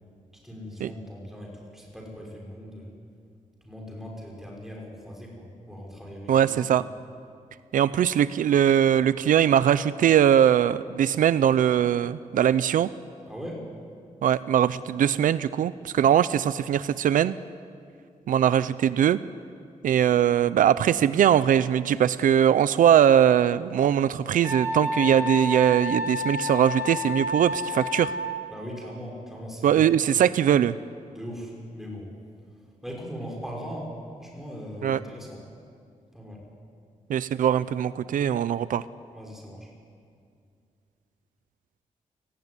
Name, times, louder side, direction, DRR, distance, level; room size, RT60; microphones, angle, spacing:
voice 1, 0.4-2.9 3.6-6.6 13.3-13.6 28.5-29.9 31.1-32.1 32.8-35.4 36.1-36.4 39.1-39.7, equal, ahead, -2 dB, 6.1 m, -39 dB
voice 2, 6.3-6.8 7.7-12.9 14.2-17.3 18.3-19.2 19.8-28.1 29.6-30.7 34.8-35.0 37.1-38.8, right 9 dB, 80° right, 15 dB, 0.6 m, -21 dB
Wind instrument woodwind instrument, 24.4-28.5, left 1 dB, 20° right, 4.0 m, -30 dB
29.5 x 18.5 x 9.8 m, 2.3 s
wide cardioid pair, 170°, 14 cm